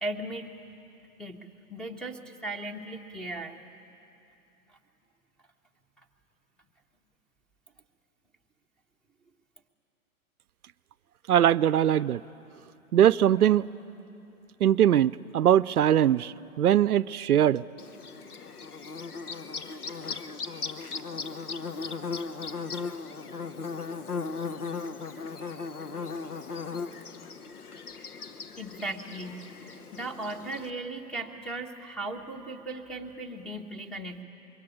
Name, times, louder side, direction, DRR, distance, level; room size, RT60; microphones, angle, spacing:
voice 1, 0.0-0.5 1.2-3.6 4.7-4.8 25.4-25.7 28.5-34.2, right 2 dB, ahead, 4 dB, 1.3 m, -37 dB
voice 2, 11.3-12.2 12.9-13.7 14.6-17.6, right 10 dB, 85° right, 17 dB, 0.6 m, -21 dB
Bird / Buzz, 17.8-30.7, left 4 dB, 90° left, 1.2 m, -37 dB
25.0 x 22.5 x 8.6 m, 2.8 s
hypercardioid pair, 120°, 44 cm